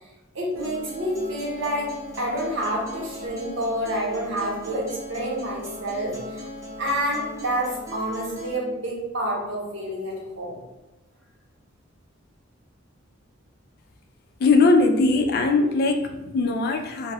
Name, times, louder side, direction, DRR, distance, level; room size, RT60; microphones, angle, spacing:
voice 1, 0.3-6.4 6.8-10.6, right 1 dB, 65° right, -3 dB, 0.8 m, -28 dB
Acoustic guitar, 0.6-8.6, left 1 dB, 15° right, 0.6 m, -38 dB
voice 2, 14.4-17.1, left 3 dB, 50° left, 4 dB, 0.3 m, -20 dB
2.2 x 2.0 x 3.3 m, 1.0 s
head